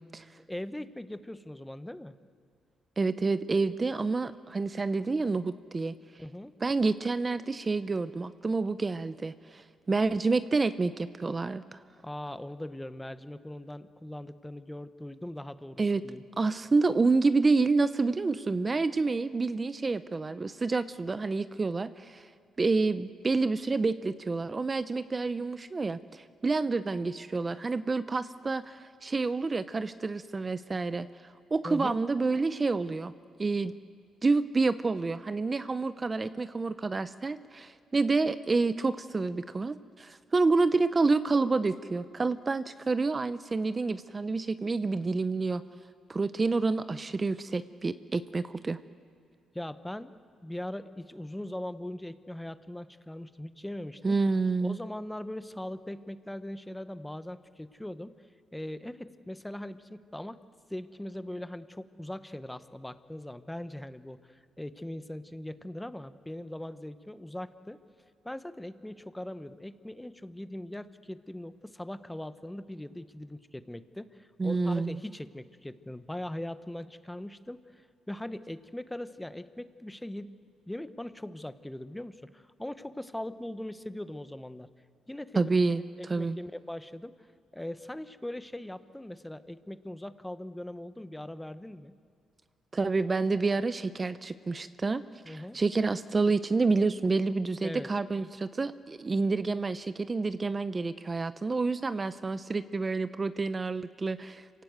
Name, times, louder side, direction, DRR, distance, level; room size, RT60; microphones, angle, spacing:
voice 1, 0.4-2.1 6.2-6.5 12.0-16.2 31.6-32.0 49.5-50.1 50.4-54.0 54.6-58.1 58.5-60.4 60.7-67.8 68.2-80.3 80.7-84.7 85.1-85.4 86.0-87.1 87.5-91.9 95.2-95.6 97.6-97.9, left 1 dB, 5° left, 12 dB, 0.9 m, -40 dB
voice 2, 3.0-5.9 6.6-11.8 15.8-16.0 16.4-22.3 22.6-31.1 31.5-33.1 33.4-33.7 34.2-45.6 46.1-48.8 54.0-54.8 74.4-75.0 85.4-86.4 92.7-104.6, right 3 dB, 30° right, 13 dB, 0.6 m, -28 dB
26.5 x 18.0 x 8.0 m, 2.3 s
cardioid pair, 90°, 0 cm